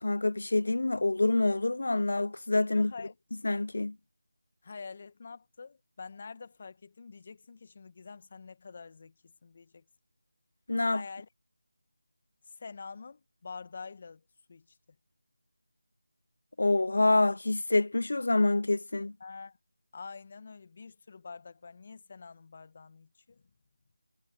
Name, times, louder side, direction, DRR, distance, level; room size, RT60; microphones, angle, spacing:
voice 1, 0.0-2.9 3.4-4.0 10.7-11.0 16.6-19.1, left 2 dB, 65° left, 0.6 m, -26 dB
voice 2, 2.6-3.1 4.6-9.1 9.4-9.8 10.8-11.3 12.5-14.2 14.5-14.8 19.2-19.6 19.9-23.4, left 5 dB, 40° left, 1.6 m, -46 dB
figure-of-eight pair, 170°, 0 cm